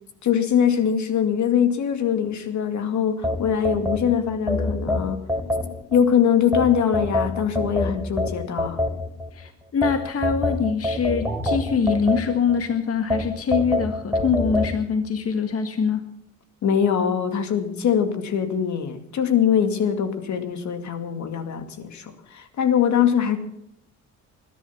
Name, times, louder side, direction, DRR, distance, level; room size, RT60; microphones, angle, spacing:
voice 1, 0.2-5.2 5.9-8.8 16.6-23.4, left 8 dB, 70° left, 8 dB, 2.4 m, -22 dB
sound 1, 3.2-6.0 6.5-9.3 9.8-12.6 13.1-14.7, left 1 dB, 10° right, 3.2 m, -25 dB
voice 2, 9.3-16.1, left 6 dB, 50° left, 7 dB, 1.7 m, -24 dB
21.0 x 11.0 x 5.8 m, 0.73 s
cardioid pair, 90°, 30 cm